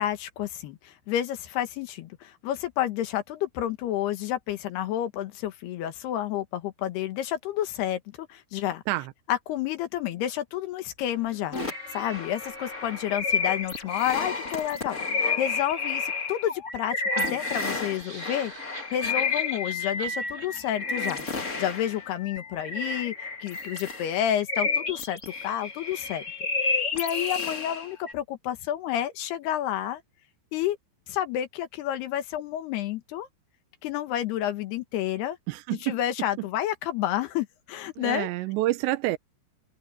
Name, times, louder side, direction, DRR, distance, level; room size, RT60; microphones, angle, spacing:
voice 1, 0.0-8.8 9.3-11.6 11.9-26.2 26.6-30.0 30.5-30.8 31.1-33.3 33.8-35.4 35.8-38.3, left 11 dB, 75° left, 3.2 m, -30 dB
sound 1, 11.0-15.3, right 1 dB, 50° right, 6.8 m, -47 dB
sound 2, 11.5-28.1, left 4 dB, 40° left, 1.0 m, -31 dB
sound 3, 17.8-22.0, right 2 dB, 20° right, 4.4 m, -44 dB
voice 2, 35.5-36.0 38.0-39.2, right 17 dB, 85° right, 3.2 m, -28 dB
omnidirectional pair, 5.0 m